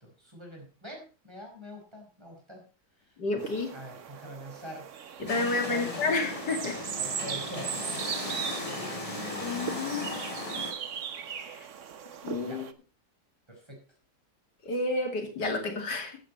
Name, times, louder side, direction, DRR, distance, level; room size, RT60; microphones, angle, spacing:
voice 1, 0.0-2.6 3.0-4.9 5.7-6.0 6.6-7.7 8.7-9.8 12.4-12.6 13.5-13.8, equal, 15° right, 1 dB, 4.9 m, -45 dB
voice 2, 3.2-3.7 5.2-6.8 9.4-10.1 11.5-11.7 12.2-12.6 14.7-16.2, left 3 dB, 85° left, 3 dB, 3.1 m, -30 dB
sound 1, 3.4-12.7, right 8 dB, 50° right, 1.2 m, -39 dB
sound 2, 5.3-10.7, left 1 dB, 20° left, 3.6 m, -36 dB
15.5 x 8.5 x 4.2 m, 0.35 s
omnidirectional pair, 1.8 m